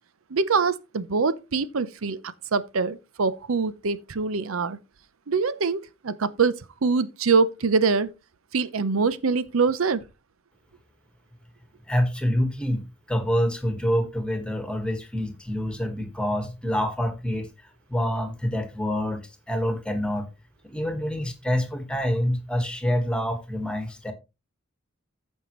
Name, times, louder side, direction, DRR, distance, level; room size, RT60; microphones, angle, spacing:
voice 1, 0.3-4.8 5.3-8.1 8.5-10.0, right 4 dB, 85° right, 0.7 m, -24 dB
voice 2, 11.9-17.5 17.9-20.3 20.6-24.1, equal, 5° left, 1.5 m, -26 dB
15.0 x 5.5 x 3.1 m
head